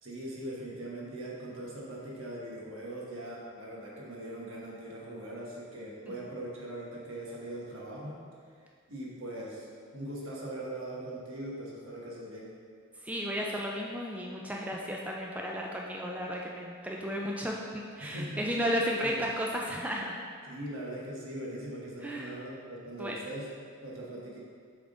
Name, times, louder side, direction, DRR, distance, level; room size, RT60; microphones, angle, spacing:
voice 1, 0.0-8.2 8.9-9.7 9.9-12.5 18.0-19.2 20.4-23.5 23.8-24.4, right 1 dB, 80° right, -4 dB, 1.2 m, -41 dB
voice 2, 13.0-20.2 22.0-22.3 23.0-23.2, equal, 5° right, -2 dB, 0.3 m, -34 dB
7.3 x 3.5 x 3.8 m, 2.1 s
head